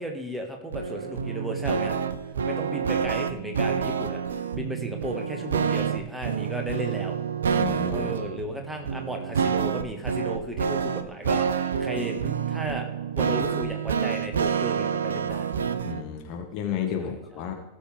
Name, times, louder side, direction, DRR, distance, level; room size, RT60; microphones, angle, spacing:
voice 1, 0.0-2.0 2.4-4.2 4.5-7.1 7.9-15.5 17.0-17.1, equal, 5° right, 2 dB, 1.6 m, -35 dB
sound 1, 0.7-16.0, right 7 dB, 65° right, 0.6 m, -28 dB
voice 2, 7.5-8.1 15.8-17.5, left 7 dB, 40° left, 3 dB, 1.5 m, -32 dB
16.5 x 7.1 x 3.4 m, 0.98 s
figure-of-eight pair, 90°, 0 cm